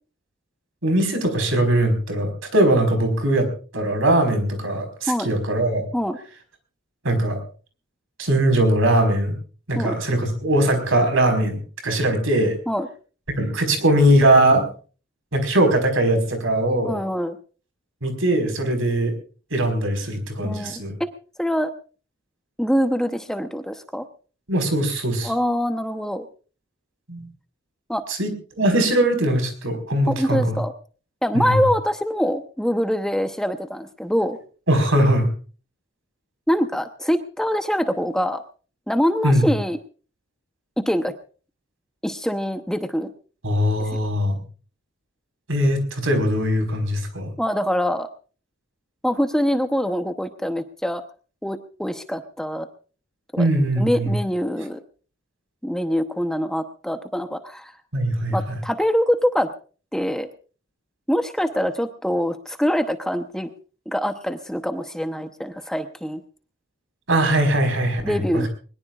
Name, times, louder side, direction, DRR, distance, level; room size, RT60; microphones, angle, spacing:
voice 1, 0.8-3.5 3.7-5.8 7.0-7.4 8.2-9.3 9.7-12.6 13.4-14.7 15.3-17.0 18.0-19.1 19.5-21.0 24.5-25.3 27.1-27.3 28.1-30.6 31.3-31.6 34.7-35.3 39.2-39.5 43.4-44.4 45.5-47.3 53.4-54.1 57.9-58.6 67.1-68.5, right 1 dB, 70° right, 6 dB, 4.7 m, -20 dB
voice 2, 16.8-17.4 20.4-21.1 21.4-21.7 22.6-24.0 25.2-26.2 27.9-28.0 30.1-30.7 31.2-34.4 36.5-38.4 38.9-39.8 40.8-41.1 42.0-43.1 47.4-48.1 49.0-51.0 51.4-52.7 53.3-53.5 53.8-54.8 55.6-57.7 58.3-59.5 59.9-60.3 61.1-63.5 63.9-66.2 68.0-68.5, equal, 5° left, 7 dB, 0.8 m, -24 dB
22.0 x 21.0 x 2.4 m, 0.39 s
head